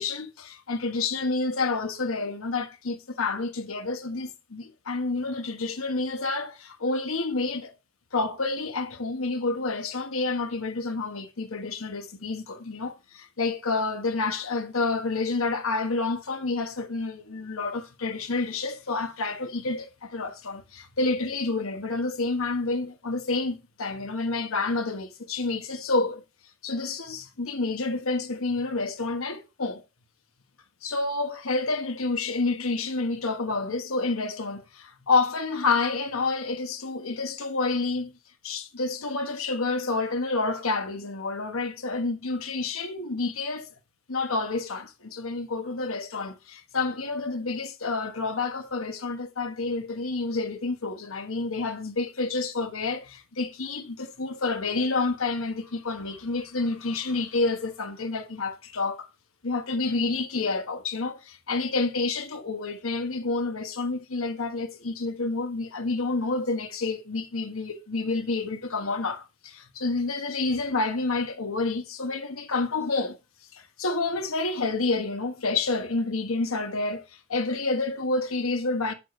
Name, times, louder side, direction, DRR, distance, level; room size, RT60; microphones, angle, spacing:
voice 1, 0.0-7.7 8.1-26.2 26.6-29.8 30.8-38.1 38.4-43.7 44.1-59.1 59.4-73.2 73.5-77.0 77.3-78.9, left 3 dB, 90° left, 1.3 m, -29 dB
8.0 x 7.4 x 3.2 m
head